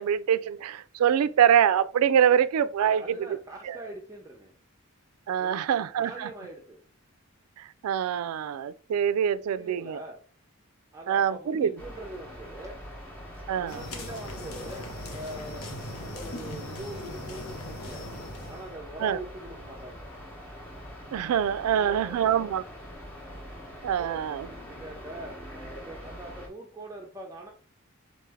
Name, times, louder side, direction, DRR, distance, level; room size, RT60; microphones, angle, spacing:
voice 1, 0.0-3.0 3.7-3.8 5.3-6.3 7.6-10.0 11.1-11.7 13.5-13.8 19.0-19.2 21.1-22.6 23.8-24.5, right 9 dB, 85° right, 0.3 m, -24 dB
voice 2, 2.8-4.5 5.4-6.8 9.5-10.2 10.9-12.8 13.5-15.7 16.0-18.1 18.5-20.1 21.7-22.5 24.0-27.5, right 1 dB, 15° right, 0.5 m, -43 dB
sound 1, 11.8-26.5, equal, 10° left, 0.9 m, -44 dB
sound 2, 13.7-18.7, left 1 dB, 80° left, 0.9 m, -40 dB
4.1 x 3.2 x 3.4 m
head